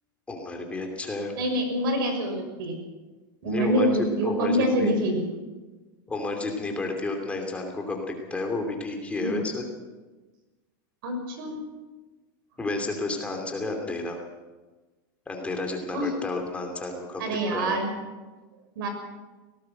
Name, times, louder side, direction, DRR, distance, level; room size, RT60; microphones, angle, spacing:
voice 1, 0.3-1.3 3.4-4.9 6.1-9.6 12.6-14.2 15.3-17.8, left 2 dB, 10° left, 2 dB, 2.9 m, -31 dB
voice 2, 1.4-2.8 3.4-5.3 9.2-9.4 11.0-11.6 15.9-16.1 17.2-17.9 18.8-18.9, right 1 dB, 75° right, 5 dB, 6.3 m, -26 dB
18.5 x 18.0 x 7.9 m, 1.2 s
supercardioid pair, 150°, 12 cm